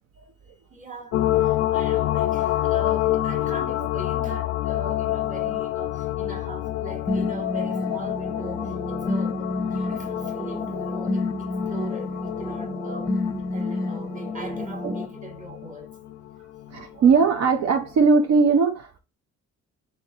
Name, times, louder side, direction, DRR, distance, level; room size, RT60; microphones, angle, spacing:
voice 1, 0.7-13.1 13.5-15.9, right 3 dB, 25° right, 1.3 m, -40 dB
sound 1, 1.1-16.8 17.2-17.3, left 14 dB, 55° left, 0.4 m, -28 dB
sound 2, 7.1-15.1, left 2 dB, 10° left, 0.6 m, -29 dB
voice 2, 16.7-19.0, right 5 dB, 60° right, 0.6 m, -19 dB
3.7 x 3.3 x 2.8 m
cardioid pair, 90°, 30 cm